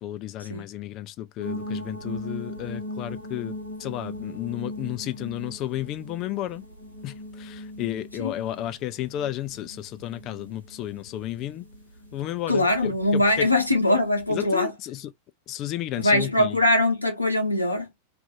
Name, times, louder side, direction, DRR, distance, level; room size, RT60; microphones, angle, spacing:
voice 1, 0.0-6.6 7.0-11.7 12.1-13.5 14.3-15.1 15.5-16.6, left 13 dB, 35° left, 0.4 m, -33 dB
sound 1, 1.4-14.4, left 1 dB, 85° right, 1.2 m, -39 dB
voice 2, 12.5-14.7 16.0-17.9, left 1 dB, 85° left, 0.9 m, -22 dB
2.6 x 2.4 x 2.6 m
figure-of-eight pair, 90°, 0 cm